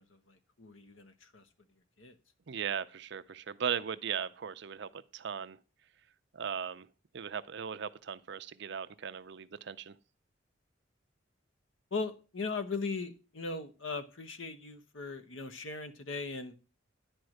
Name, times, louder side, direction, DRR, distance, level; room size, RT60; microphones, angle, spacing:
voice 1, 0.0-1.4 2.0-2.1 11.9-16.5, left 4 dB, 90° left, 1.1 m, -39 dB
voice 2, 2.5-5.6 6.3-6.9 7.1-9.9, right 7 dB, 65° right, 0.5 m, -38 dB
10.5 x 4.5 x 6.4 m
head